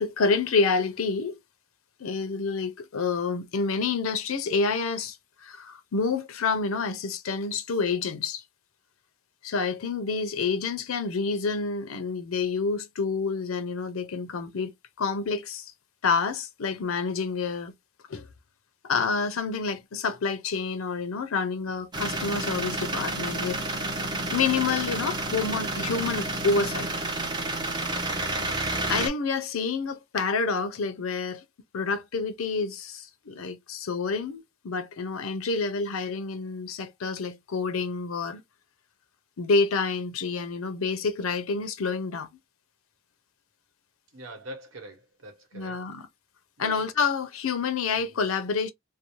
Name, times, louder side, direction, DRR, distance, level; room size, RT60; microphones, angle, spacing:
voice 1, 0.0-1.4 2.0-8.4 9.4-14.7 15.0-15.7 16.0-17.7 18.1-18.3 18.8-23.6 24.3-26.9 28.5-31.4 31.7-38.4 39.4-42.3 45.5-46.1 46.6-48.7, left 4 dB, 90° left, 0.6 m, -28 dB
sound 1, 21.9-29.1, right 2 dB, 20° right, 0.6 m, -30 dB
voice 2, 44.1-45.8 46.6-46.9 47.9-48.2, right 1 dB, 75° right, 1.1 m, -43 dB
2.6 x 2.0 x 2.8 m
head